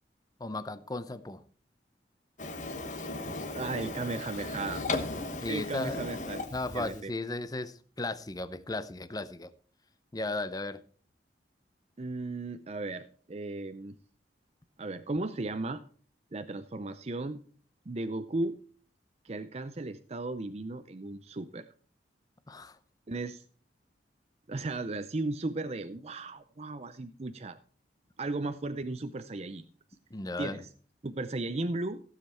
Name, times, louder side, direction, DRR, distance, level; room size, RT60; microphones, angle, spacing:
voice 1, 0.4-1.4 5.4-6.0 6.5-9.5 10.1-10.8 22.5-22.8 30.1-30.6, left 2 dB, 20° left, 0.6 m, -35 dB
Printer, 2.4-7.0, left 2 dB, 45° left, 1.2 m, -36 dB
voice 2, 3.5-4.8 5.5-6.4 6.7-7.1 12.0-14.0 14.8-15.8 16.3-17.4 17.9-18.6 19.2-21.7 23.1-23.4 24.5-27.6 28.2-29.6 30.4-30.7 31.0-32.0, right 2 dB, 35° right, 0.6 m, -35 dB
15.5 x 7.5 x 4.3 m
head